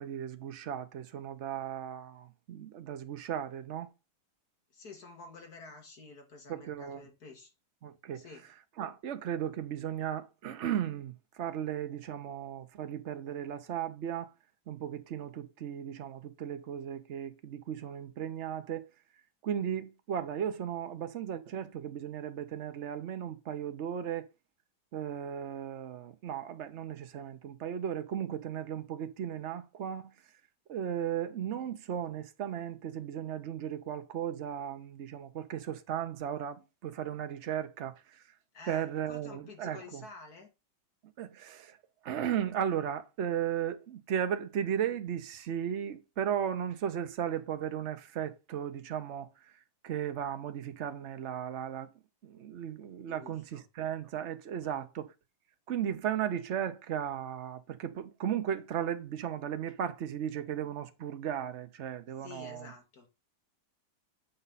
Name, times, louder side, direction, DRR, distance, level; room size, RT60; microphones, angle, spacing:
voice 1, 0.0-3.9 6.5-7.0 7.8-8.2 8.8-11.1 11.4-14.3 14.7-18.9 19.4-24.3 24.9-30.1 30.7-38.2 38.7-40.0 41.2-41.8 42.0-49.3 49.8-51.9 52.2-55.1 55.7-62.7, right 9 dB, 80° right, 0.6 m, -36 dB
voice 2, 4.7-7.5 8.1-8.5 38.5-40.5 53.1-53.6 54.6-54.9 62.2-63.1, left 3 dB, 45° left, 2.3 m, -50 dB
8.4 x 5.5 x 4.1 m
omnidirectional pair, 2.3 m